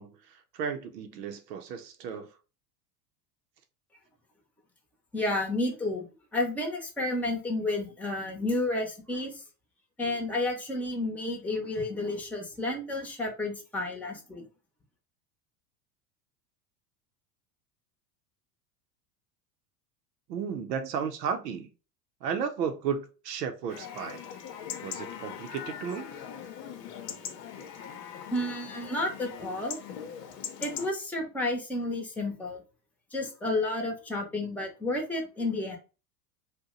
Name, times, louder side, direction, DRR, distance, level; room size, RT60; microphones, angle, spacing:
voice 1, 0.0-2.3 20.3-21.7 22.2-24.2 24.8-26.2, right 7 dB, 90° right, 0.6 m, -34 dB
voice 2, 5.1-6.1 6.3-9.4 10.0-14.5 28.3-29.8 30.6-32.6 33.1-35.8, left 2 dB, 5° left, 0.7 m, -31 dB
Chatter / Livestock farm animals working animals / Chirp tweet, 23.7-30.9, left 8 dB, 80° left, 0.8 m, -41 dB
2.8 x 2.2 x 3.7 m
hypercardioid pair, 100°, 48 cm